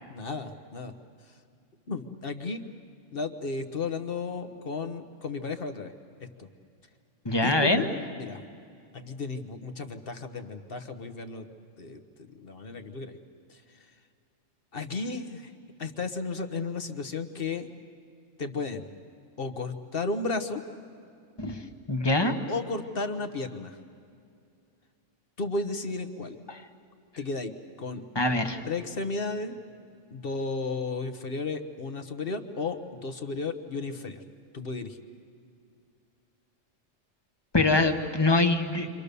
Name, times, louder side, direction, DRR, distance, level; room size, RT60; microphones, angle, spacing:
voice 1, 0.1-0.9 1.9-2.6 3.1-5.9 6.4-6.5 7.4-8.4 8.9-11.5 11.8-13.2 13.5-13.6 14.7-15.5 15.8-17.7 18.4-18.9 19.4-20.6 22.5-23.8 25.4-26.4 27.2-27.5 27.8-28.0 28.6-29.5 30.1-34.2 34.5-35.0, left 3 dB, 50° left, 8 dB, 1.3 m, -33 dB
voice 2, 7.2-7.9 21.4-21.6 21.9-22.3 26.5-26.6 28.1-28.6 37.5-38.9, left 2 dB, 20° left, 6 dB, 1.3 m, -24 dB
29.0 x 25.0 x 6.8 m, 2.4 s
omnidirectional pair, 1.3 m